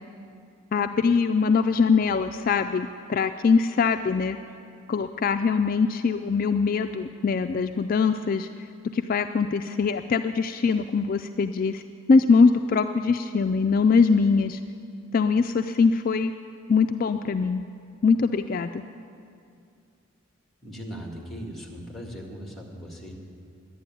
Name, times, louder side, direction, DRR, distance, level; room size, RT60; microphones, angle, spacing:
voice 1, 0.7-4.4 4.9-8.5 8.9-11.8 12.1-14.6 15.1-16.3 16.7-17.6 18.0-18.8, left 5 dB, 45° left, 8 dB, 0.3 m, -22 dB
voice 2, 20.6-23.1, equal, ahead, -1 dB, 1.9 m, -39 dB
11.5 x 9.5 x 9.1 m, 2.4 s
head